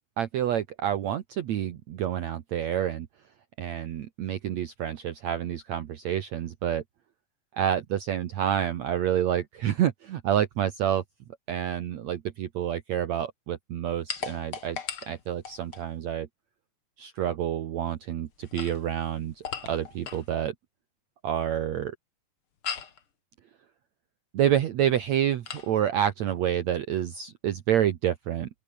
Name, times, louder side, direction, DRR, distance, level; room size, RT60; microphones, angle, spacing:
voice 1, 0.2-3.1 3.6-6.8 7.5-11.0 11.5-16.3 17.0-20.5 21.2-22.0 24.3-28.5, right 10 dB, 60° right, 2.2 m, -28 dB
sound 1, 14.1-15.9 18.3-20.3 22.6-23.0 25.5-25.7, left 7 dB, 40° left, 2.7 m, -37 dB
open air
omnidirectional pair, 4.0 m